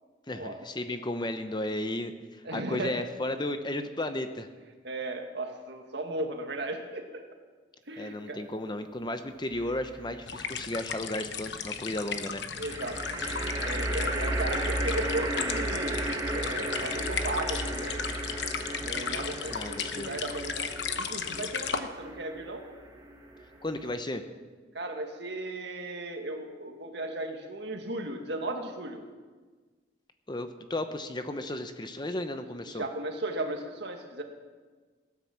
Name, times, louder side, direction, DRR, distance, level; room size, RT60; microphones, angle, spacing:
voice 1, 0.3-4.5 8.0-12.4 19.5-20.1 23.6-24.2 30.3-32.8, left 1 dB, 25° left, 9 dB, 0.7 m, -34 dB
voice 2, 2.4-2.9 4.8-7.2 7.9-8.4 12.6-13.0 13.6-16.0 16.3-18.0 18.8-20.7 20.9-22.6 24.7-29.0 32.7-34.2, right 2 dB, 65° right, 3 dB, 2.0 m, -36 dB
sound 1, 9.5-10.2 12.6-24.0, right 1 dB, 20° right, 1.9 m, -34 dB
sound 2, 10.3-21.8, left 6 dB, 65° left, 1.0 m, -35 dB
17.5 x 9.7 x 7.3 m, 1.4 s
head